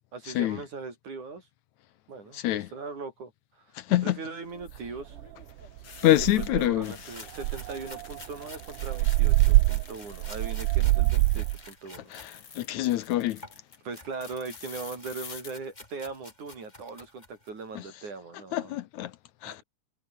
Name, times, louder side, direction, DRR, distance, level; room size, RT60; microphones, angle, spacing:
voice 1, 0.1-1.5 2.1-3.3 3.6-5.2 6.0-12.1 13.8-18.7 19.4-19.6, right 4 dB, 70° right, 7.3 m, -40 dB
sound 1, 2.1-2.6 4.5-11.8 12.1-13.8 14.2-15.5, left 6 dB, 45° left, 3.3 m, -49 dB
voice 2, 2.3-2.7 3.8-4.2 6.0-6.9 12.1-13.4 18.5-19.1 19.4-19.6, left 14 dB, 75° left, 2.0 m, -26 dB
sound 2, 4.7-4.8 5.2-5.4 5.8-5.9 6.2-6.8 7.4-11.6, right 21 dB, 85° right, 2.1 m, -24 dB
sound 3, 6.8-12.3 12.7-17.6, left 2 dB, 15° left, 3.3 m, -50 dB
omnidirectional pair, 3.6 m